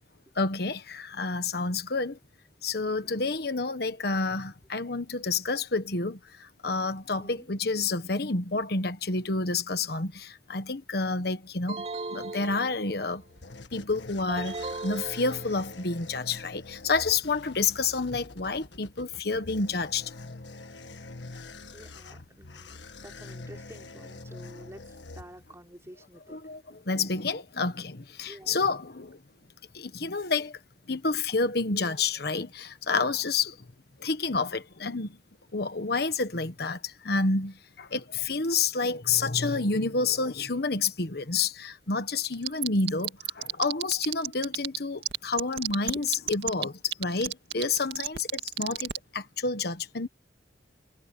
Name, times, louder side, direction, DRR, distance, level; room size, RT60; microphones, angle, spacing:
voice 1, 0.3-2.2 2.6-11.8 12.1-13.2 13.7-20.1 26.3-29.2 29.7-30.6 30.9-33.6 34.0-35.2 35.5-50.1, left 4 dB, 60° left, 1.3 m, -29 dB
sound 1, 11.7-13.2 14.3-15.9, right 3 dB, 35° right, 3.5 m, -38 dB
sound 2, 12.9-25.8, left 2 dB, 85° left, 1.7 m, -45 dB
voice 2, 21.7-24.8 25.1-26.4 26.7-26.8 28.2-28.5, right 1 dB, 15° right, 4.1 m, -49 dB
sound 3, 42.2-44.8 45.0-49.0, right 11 dB, 70° right, 2.1 m, -30 dB
head